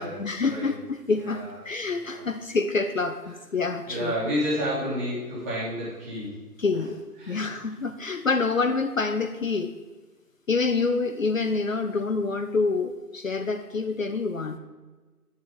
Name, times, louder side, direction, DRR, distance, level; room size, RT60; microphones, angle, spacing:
voice 1, 0.0-4.1 6.6-7.0 7.3-9.7 10.5-14.6, left 4 dB, 55° left, 8 dB, 0.7 m, -27 dB
voice 2, 1.1-1.6 2.0-2.3 3.9-6.4 6.7-6.8 7.2-7.7, equal, 10° right, -9 dB, 1.9 m, -31 dB
10.5 x 5.9 x 4.9 m, 1.3 s
figure-of-eight pair, 155°, 47 cm